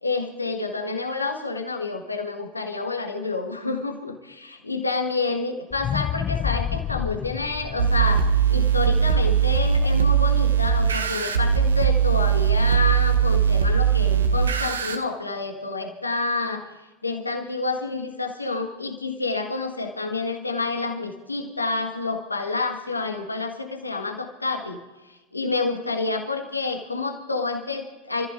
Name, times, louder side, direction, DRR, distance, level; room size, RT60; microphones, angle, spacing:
voice 1, 0.0-16.7 17.0-24.8 25.0-28.3, left 3 dB, 90° left, 4 dB, 1.5 m, -28 dB
sound 1, 5.7-10.0 10.4-10.5, left 9 dB, 35° left, 0.4 m, -30 dB
sound 2, 7.8-15.0, right 7 dB, 80° right, 1.0 m, -20 dB
28.5 x 14.5 x 2.6 m, 1.2 s
figure-of-eight pair, 85°, 0 cm